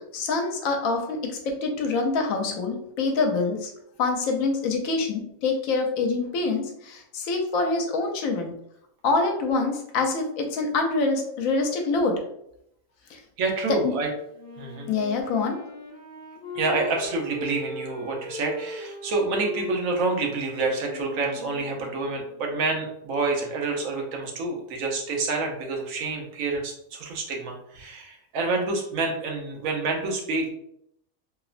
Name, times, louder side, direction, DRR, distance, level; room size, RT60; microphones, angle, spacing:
voice 1, 0.0-3.7 4.0-8.5 9.0-12.1 13.1-13.2 13.8-13.9 14.9-15.6, left 3 dB, 80° left, 3 dB, 1.0 m, -25 dB
voice 2, 13.4-14.1 14.6-14.9 16.5-30.5, right 3 dB, 80° right, 1 dB, 1.0 m, -28 dB
Wind instrument woodwind instrument, 14.3-22.9, left 2 dB, 45° left, 0.9 m, -39 dB
2.9 x 2.0 x 2.4 m, 0.76 s
omnidirectional pair, 1.4 m